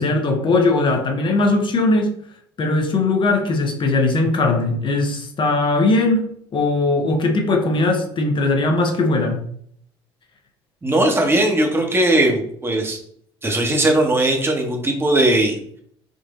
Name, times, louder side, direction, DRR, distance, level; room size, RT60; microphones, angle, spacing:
voice 1, 0.0-2.2 2.6-6.3 6.5-9.4, left 2 dB, 40° left, 4 dB, 1.0 m, -19 dB
voice 2, 10.8-13.0 13.4-15.6, right 1 dB, 15° right, 2 dB, 1.2 m, -18 dB
3.9 x 2.6 x 3.8 m, 0.63 s
hypercardioid pair, 60°, 13 cm